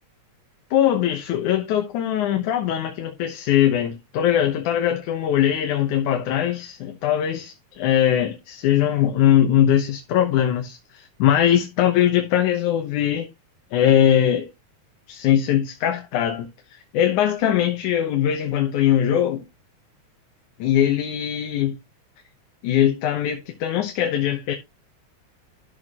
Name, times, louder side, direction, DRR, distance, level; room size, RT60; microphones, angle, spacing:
voice 1, 0.7-13.3 13.7-14.5 15.1-19.4 20.6-21.8 22.6-24.5, left 10 dB, 85° left, 2.6 m, -21 dB
13.0 x 6.3 x 3.0 m
omnidirectional pair, 3.4 m